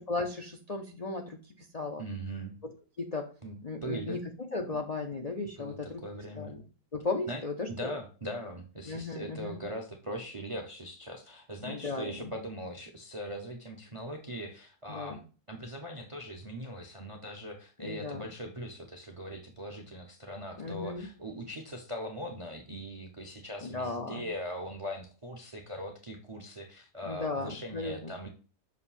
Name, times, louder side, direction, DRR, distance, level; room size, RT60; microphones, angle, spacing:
voice 1, 0.0-2.0 2.6-2.7 3.0-3.3 3.6-6.0 6.4-6.6 6.9-7.9 8.9-9.6 11.6-12.3 14.9-15.2 17.8-18.3 20.5-21.1 23.6-24.3 27.1-28.1, left 3 dB, 65° left, 3 dB, 0.3 m, -36 dB
voice 2, 2.0-2.6 3.4-4.2 5.6-6.6 7.3-7.4 7.8-15.2 15.5-28.3, equal, 40° right, 3 dB, 0.4 m, -40 dB
6.4 x 2.7 x 5.5 m, 0.36 s
omnidirectional pair, 1.8 m